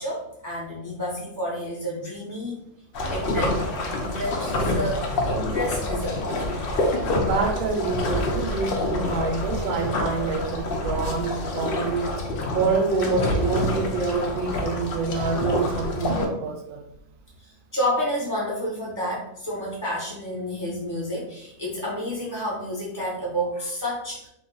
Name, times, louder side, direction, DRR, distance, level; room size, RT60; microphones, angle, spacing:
voice 1, 0.0-2.6 3.1-3.6 3.9-5.0 5.3-6.2 17.4-24.3, equal, 25° right, -6 dB, 0.4 m, -30 dB
sound 1, 2.9-16.3, left 1 dB, 85° left, 0.5 m, -27 dB
voice 2, 7.2-12.1 12.5-16.9, right 4 dB, 70° right, 4 dB, 0.9 m, -26 dB
2.5 x 2.3 x 3.8 m, 0.80 s
omnidirectional pair, 1.6 m